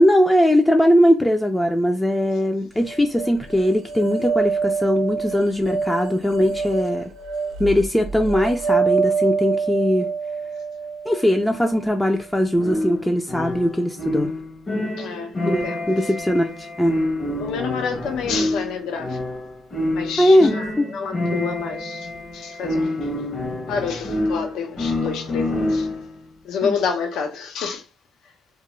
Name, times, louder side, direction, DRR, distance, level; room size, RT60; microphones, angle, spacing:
voice 1, 0.0-7.1 7.6-10.1 11.1-14.3 15.4-17.0 20.2-20.9 26.6-26.7, equal, 10° left, 0.3 m, -20 dB
sound 1, 2.8-12.0, right 5 dB, 85° right, 0.5 m, -26 dB
sound 2, 12.6-26.2, left 1 dB, 40° left, 0.8 m, -27 dB
voice 2, 15.0-15.8 17.4-19.2 19.9-23.0 23.7-25.9 26.4-27.8, left 6 dB, 85° left, 0.5 m, -28 dB
2.3 x 2.1 x 3.0 m
cardioid pair, 90°, 0 cm